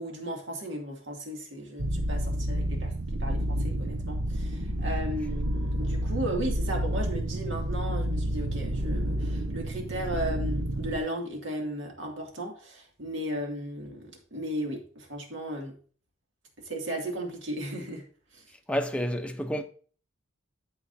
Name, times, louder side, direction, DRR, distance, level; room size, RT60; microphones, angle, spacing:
voice 1, 0.0-2.9 3.2-15.7 16.6-18.0 18.3-18.4, right 1 dB, 65° right, 2.4 m, -35 dB
sound 1, 1.8-11.0, right 1 dB, 85° right, 1.0 m, -30 dB
voice 2, 18.7-19.6, equal, 5° left, 0.7 m, -29 dB
13.0 x 5.0 x 2.7 m
head